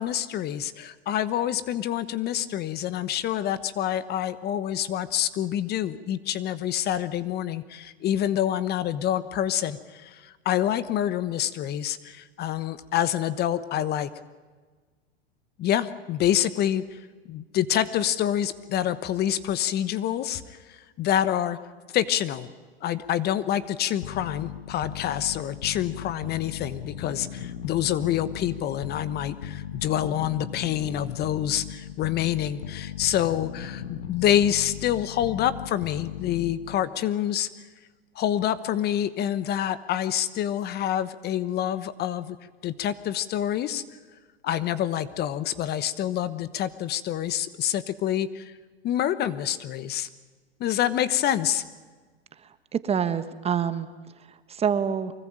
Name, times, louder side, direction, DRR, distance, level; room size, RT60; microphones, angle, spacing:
voice 1, 0.0-14.1 15.6-17.0 17.3-21.6 21.9-22.5 22.8-37.5 38.1-42.4 42.6-43.8 44.4-48.5 48.8-50.1 50.6-51.6, left 11 dB, 30° left, 14 dB, 1.2 m, -27 dB
sound 1, 24.0-36.9, left 10 dB, 85° left, 1.6 m, -37 dB
voice 2, 52.4-53.9 54.3-55.1, right 7 dB, 20° right, 12 dB, 1.3 m, -27 dB
24.5 x 20.5 x 8.9 m, 1.4 s
hypercardioid pair, 125°, 31 cm